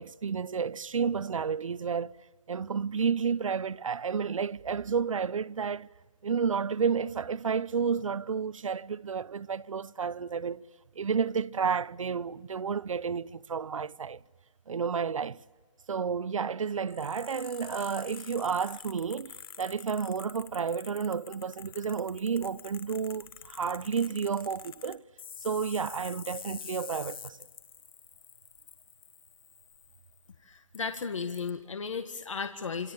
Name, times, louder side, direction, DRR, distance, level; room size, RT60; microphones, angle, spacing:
voice 1, 0.0-2.2 2.5-5.9 6.2-10.6 11.0-14.2 14.7-15.4 15.9-25.0 25.4-27.4, right 6 dB, 80° right, 0.8 m, -31 dB
sound 1, 16.9-30.3 30.7-30.8 31.3-31.5, left 7 dB, 45° left, 1.5 m, -47 dB
voice 2, 30.4-32.9, left 5 dB, 75° left, 1.8 m, -35 dB
28.0 x 25.5 x 7.2 m
hypercardioid pair, 170°, 16 cm